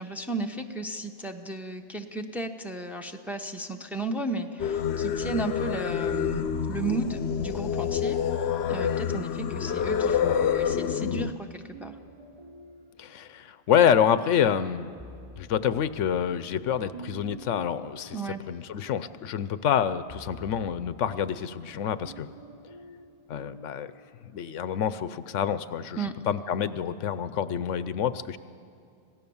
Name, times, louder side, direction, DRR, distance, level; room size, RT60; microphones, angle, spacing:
voice 1, 0.0-8.2 8.7-12.0 18.1-18.4 26.0-26.1, right 2 dB, ahead, 3 dB, 0.9 m, -34 dB
Singing, 4.6-11.3, left 8 dB, 65° left, 0.9 m, -27 dB
sound 1, 5.2-8.7 9.6-14.1 14.5-23.8, right 2 dB, 20° right, 1.9 m, -49 dB
voice 2, 13.0-14.9 15.4-18.2 18.5-22.3 23.3-23.9 24.3-26.0 26.3-28.4, left 8 dB, 90° left, 14 dB, 1.1 m, -27 dB
26.0 x 17.0 x 7.1 m, 2.4 s
omnidirectional pair, 1.2 m